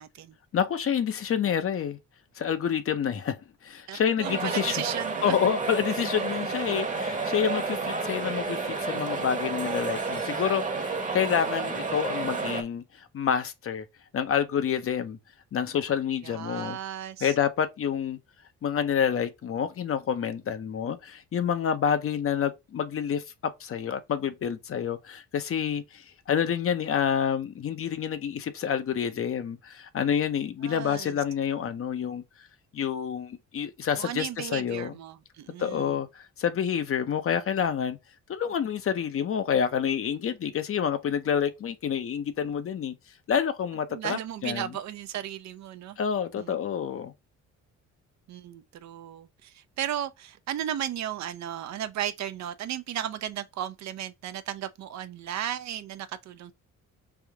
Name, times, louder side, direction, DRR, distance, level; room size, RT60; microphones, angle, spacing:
voice 1, 0.0-0.4 3.9-5.4 16.2-17.3 30.6-31.2 34.0-36.0 43.9-46.0 46.4-46.5 48.3-56.5, right 11 dB, 65° right, 0.6 m, -35 dB
voice 2, 0.5-2.0 2.4-3.4 3.6-4.8 5.2-13.8 14.1-15.2 15.5-16.8 17.2-18.2 18.6-32.2 32.7-34.9 35.6-38.0 38.3-42.9 43.3-44.7 46.0-47.1, left 8 dB, 50° left, 0.7 m, -28 dB
sound 1, 4.2-12.6, right 4 dB, 25° right, 0.9 m, -31 dB
3.5 x 2.7 x 4.6 m
cardioid pair, 90°, 30 cm